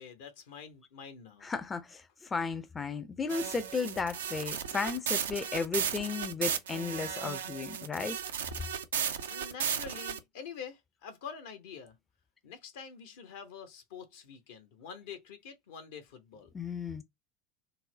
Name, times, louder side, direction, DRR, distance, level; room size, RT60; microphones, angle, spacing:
voice 1, 0.0-1.5 9.3-12.0 12.4-16.5, left 6 dB, 65° left, 0.8 m, -46 dB
voice 2, 1.4-8.2 16.5-17.0, left 4 dB, 20° left, 0.5 m, -34 dB
sound 1, 3.3-10.2, right 8 dB, 75° right, 0.4 m, -35 dB
4.0 x 2.0 x 2.7 m
figure-of-eight pair, 75°, 0 cm